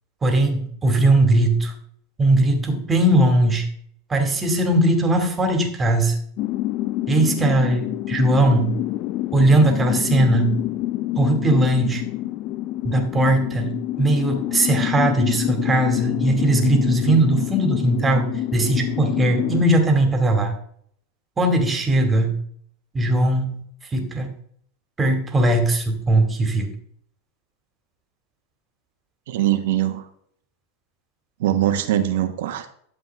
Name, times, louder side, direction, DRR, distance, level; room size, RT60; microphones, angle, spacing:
voice 1, 0.2-1.7 2.2-3.7 4.1-6.2 7.1-8.7 9.3-10.6 11.2-12.0 12.8-20.5 21.4-22.3 22.9-23.6 23.9-24.3 25.0-26.7, right 1 dB, 20° right, 4 dB, 2.4 m, -19 dB
sound 1, 6.4-19.6, left 15 dB, 50° left, 0.4 m, -26 dB
voice 2, 29.3-30.0 31.4-32.7, right 12 dB, 75° right, 7 dB, 1.4 m, -22 dB
11.5 x 7.7 x 3.6 m, 0.63 s
supercardioid pair, 120°, 0 cm